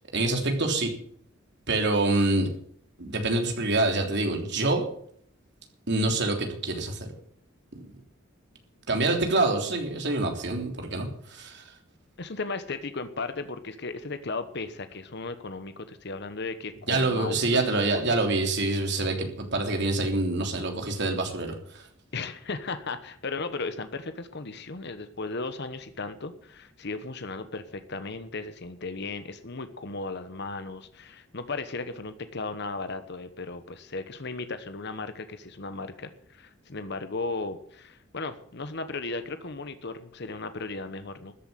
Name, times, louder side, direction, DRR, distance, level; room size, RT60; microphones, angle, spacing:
voice 1, 0.1-0.9 1.7-2.5 3.0-4.8 5.9-7.0 8.9-11.6 16.9-21.8, right 2 dB, 60° right, 3 dB, 3.3 m, -26 dB
voice 2, 12.2-17.6 17.9-18.2 22.1-41.3, left 3 dB, 55° left, 10 dB, 1.1 m, -36 dB
14.0 x 8.1 x 9.7 m, 0.63 s
head